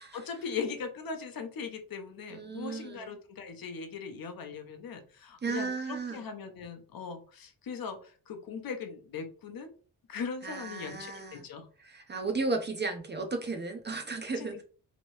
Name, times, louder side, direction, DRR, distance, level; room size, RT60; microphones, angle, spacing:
voice 1, 0.1-9.7 10.1-11.7 14.2-14.5, left 5 dB, 65° left, 0.6 m, -39 dB
voice 2, 2.3-3.1 5.4-6.2 10.4-11.4 11.8-14.6, right 3 dB, 30° right, 0.4 m, -34 dB
3.0 x 2.6 x 3.1 m
wide cardioid pair, 180°, 37 cm